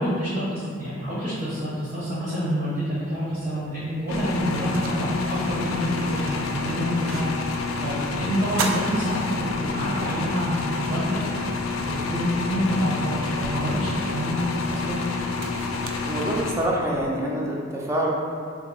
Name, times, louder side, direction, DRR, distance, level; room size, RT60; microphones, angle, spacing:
voice 1, 0.0-14.4 14.7-15.0, equal, 40° right, -11 dB, 0.9 m, -27 dB
sound 1, 4.1-17.1, left 4 dB, 85° left, 0.3 m, -29 dB
sound 2, 4.3-7.7 8.0-8.1 8.5-10.0 10.4-10.5 11.9-12.0 12.6-16.8, right 4 dB, 90° right, 0.3 m, -37 dB
voice 2, 16.0-18.1, right 1 dB, 15° right, -3 dB, 0.4 m, -26 dB
2.8 x 2.5 x 3.7 m, 2.2 s
head